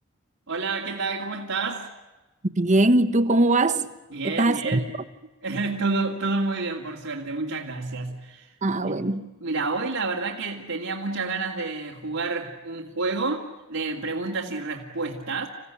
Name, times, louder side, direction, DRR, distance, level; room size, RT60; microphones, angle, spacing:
voice 1, 0.5-1.9 4.1-4.9 5.4-8.5 8.8-9.0 9.4-15.5, right 3 dB, 90° right, 2.6 m, -29 dB
voice 2, 2.6-3.9 4.2-4.8 8.6-9.3, right 2 dB, 35° right, 1.2 m, -21 dB
28.5 x 16.0 x 9.9 m
head